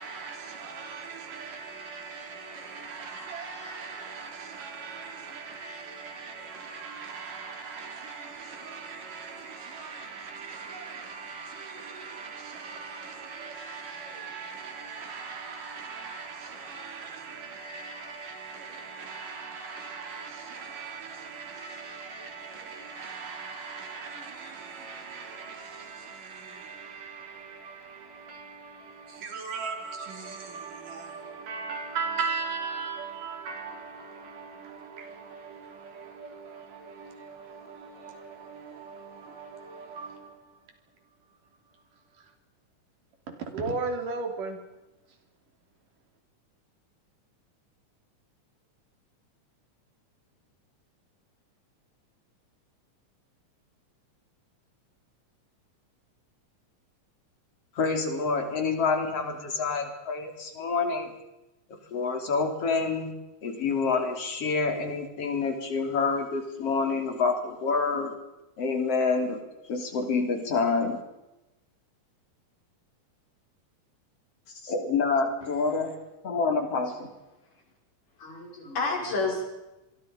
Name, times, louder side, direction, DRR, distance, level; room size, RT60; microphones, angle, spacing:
voice 1, 0.0-40.7 41.3-41.4 41.7-42.3 43.3-44.6 45.1-45.2, right 4 dB, 90° right, 4.8 m, -39 dB
voice 2, 57.8-61.1 61.9-63.1 63.4-68.1 68.6-69.4 69.7-71.0 74.5-75.9 76.2-77.1, left 4 dB, 50° left, 4.1 m, -27 dB
voice 3, 78.2-79.5, left 3 dB, 85° left, 7.2 m, -30 dB
27.5 x 22.5 x 5.3 m
omnidirectional pair, 3.6 m